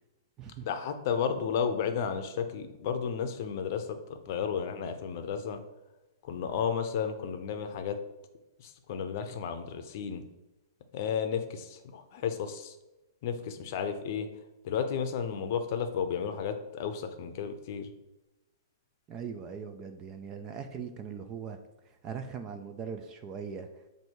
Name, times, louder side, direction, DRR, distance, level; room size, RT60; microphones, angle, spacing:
voice 1, 0.6-4.0 4.3-5.6 6.3-8.0 8.9-10.2 10.9-12.7 13.2-14.3 14.6-17.9, left 7 dB, 45° left, 7 dB, 0.6 m, -32 dB
voice 2, 19.1-21.6 21.8-23.7, right 6 dB, 20° right, 7 dB, 0.4 m, -40 dB
7.8 x 2.7 x 4.5 m, 1.0 s
hypercardioid pair, 160°, 2 cm